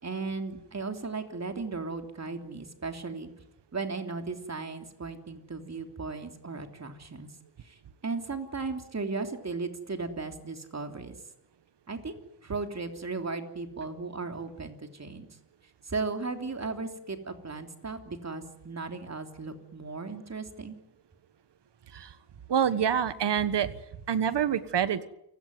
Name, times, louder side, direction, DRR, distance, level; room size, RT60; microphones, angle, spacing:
voice 1, 0.0-3.3 3.7-7.3 7.6-7.8 8.0-11.2 11.9-15.3 15.8-20.8, right 4 dB, 40° right, 6 dB, 3.3 m, -36 dB
voice 2, 22.5-23.7 24.1-25.1, right 8 dB, 90° right, 13 dB, 1.5 m, -26 dB
28.5 x 17.0 x 9.5 m, 0.84 s
wide cardioid pair, 95°, 40 cm